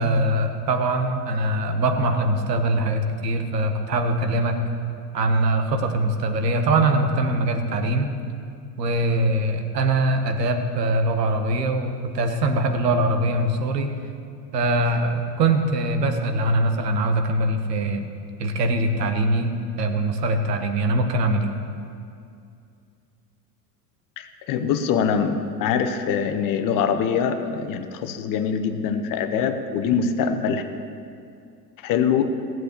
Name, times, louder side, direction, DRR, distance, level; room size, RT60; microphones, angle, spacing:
voice 1, 0.0-4.6 5.1-8.1 8.8-13.9 14.5-18.1 18.4-21.5, right 1 dB, 75° right, 6 dB, 1.6 m, -22 dB
voice 2, 24.2-30.6 31.8-32.3, left 7 dB, 40° left, 7 dB, 1.2 m, -23 dB
17.0 x 7.9 x 6.8 m, 2.4 s
figure-of-eight pair, 80°, 49 cm